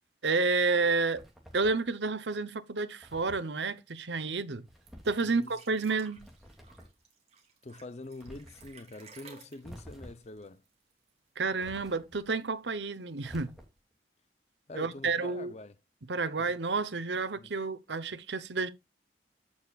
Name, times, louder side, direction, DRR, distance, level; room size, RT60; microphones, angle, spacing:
voice 1, 0.2-1.3 1.5-4.7 5.0-6.3 11.4-13.5 14.7-15.5 16.1-18.7, right 4 dB, 90° right, 0.9 m, -30 dB
sound 1, 1.1-1.9 3.0-3.5 4.7-5.2 6.1-7.0 8.2-8.7 9.6-10.4 11.6-12.3 13.2-13.9, equal, ahead, 2.6 m, -50 dB
sound 2, 4.9-11.3 11.5-11.6 12.0-12.7 13.5-13.6, right 4 dB, 35° right, 3.1 m, -56 dB
voice 2, 5.2-5.5 7.6-10.6 14.7-15.7 16.4-16.5 17.4-17.5, left 2 dB, 40° left, 0.7 m, -45 dB
14.5 x 6.4 x 2.4 m
head